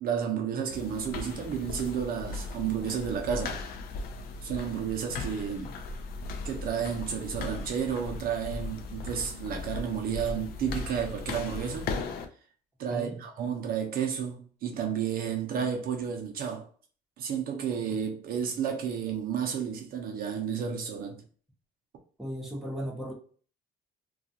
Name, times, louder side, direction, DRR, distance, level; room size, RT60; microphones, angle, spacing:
voice 1, 0.0-3.6 4.4-5.8 6.4-11.9 12.8-16.7 17.2-21.2, right 7 dB, 60° right, 0.5 m, -32 dB
sound 1, 0.7-12.3, left 3 dB, 65° left, 0.5 m, -37 dB
voice 2, 22.2-23.1, equal, ahead, 0.9 m, -36 dB
2.3 x 2.3 x 2.7 m
cardioid pair, 110°, 17 cm